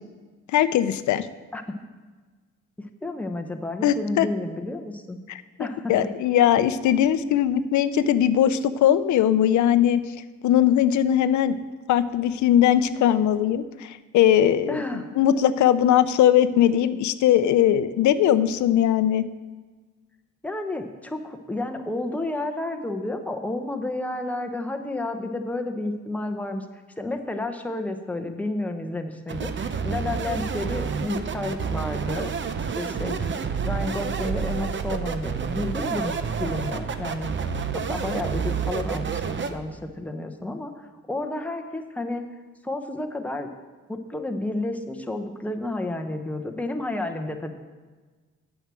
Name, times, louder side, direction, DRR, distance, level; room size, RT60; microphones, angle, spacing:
voice 1, 0.5-1.3 3.8-4.3 5.3-10.0 10.4-11.6 11.9-14.8 15.2-19.2, left 10 dB, 75° left, 13 dB, 0.6 m, -20 dB
voice 2, 3.0-5.2 5.6-5.9 14.7-15.1 20.4-26.6 27.0-32.3 32.7-33.2 33.6-37.3 37.7-42.2 42.6-43.5 43.9-47.5, left 2 dB, 5° left, 5 dB, 0.9 m, -31 dB
sound 1, 29.3-39.5, right 6 dB, 40° right, 0.8 m, -29 dB
8.9 x 6.1 x 7.5 m, 1.4 s
cardioid pair, 90°, 30 cm